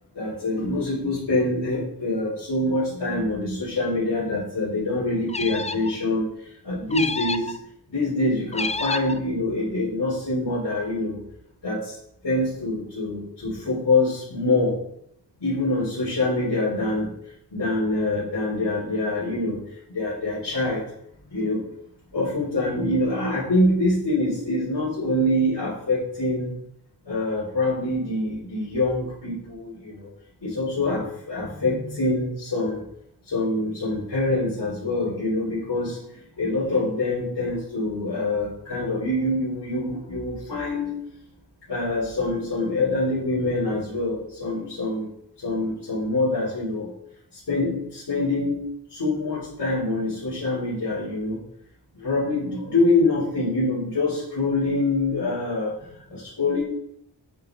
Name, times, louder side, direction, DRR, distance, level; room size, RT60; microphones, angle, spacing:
voice 1, 0.1-7.5 7.9-11.2 11.6-12.0 12.2-14.8 15.4-17.2 17.5-20.8 21.3-21.7 22.1-26.6 27.0-30.1 30.4-32.9 33.2-41.0 41.7-45.1 45.4-46.9 47.3-51.4 51.9-56.6, left 2 dB, 70° left, -8 dB, 4.0 m, -25 dB
sound 1, 5.3-6.0 6.9-7.6 8.5-9.2, left 3 dB, 15° left, 0.4 m, -29 dB
8.9 x 8.8 x 4.0 m, 0.72 s
wide cardioid pair, 95°, 42 cm